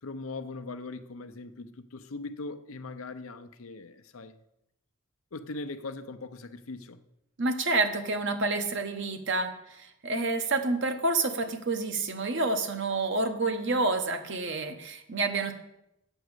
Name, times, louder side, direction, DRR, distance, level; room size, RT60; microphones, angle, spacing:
voice 1, 0.0-4.4 5.3-7.0, left 3 dB, 80° left, 0.7 m, -40 dB
voice 2, 7.4-15.5, right 3 dB, 60° right, 1.1 m, -28 dB
7.8 x 6.1 x 8.0 m
head